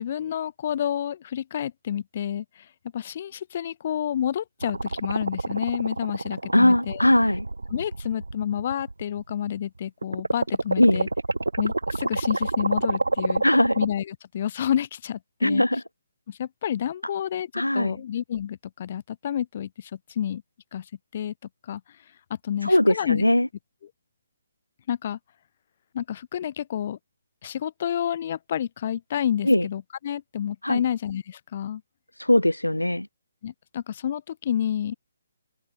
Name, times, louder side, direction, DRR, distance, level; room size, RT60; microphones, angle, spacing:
voice 1, 0.0-2.7 2.9-7.0 7.7-11.1 11.6-13.4 13.8-15.6 16.3-20.4 20.7-21.3 21.6-21.8 22.3-23.2 24.9-25.2 25.9-27.0 27.4-31.8 33.4-34.9, left 10 dB, 40° left, 3.4 m, -29 dB
sound 1, 4.6-9.6 10.0-13.9, right 2 dB, 75° right, 4.2 m, -28 dB
voice 2, 6.5-7.5 10.8-11.0 13.4-13.8 15.4-15.8 17.5-18.0 22.6-23.5 29.4-29.7 30.6-30.8 32.2-33.1, left 1 dB, 85° left, 1.0 m, -20 dB
open air
figure-of-eight pair, 140°, 0 cm